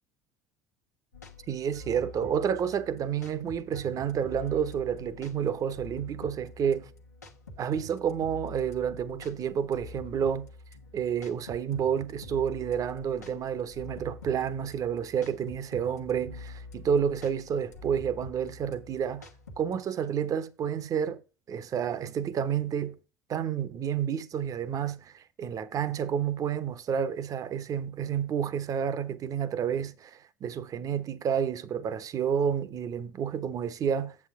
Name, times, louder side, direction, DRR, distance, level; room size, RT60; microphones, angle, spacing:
sound 1, 1.1-19.8, left 2 dB, 90° left, 1.2 m, -46 dB
voice 1, 1.5-6.9 7.6-10.5 10.9-19.3 19.6-21.2 21.5-23.0 23.3-34.2, right 8 dB, 45° right, 0.9 m, -30 dB
8.7 x 7.3 x 3.7 m
hypercardioid pair, 65°, 9 cm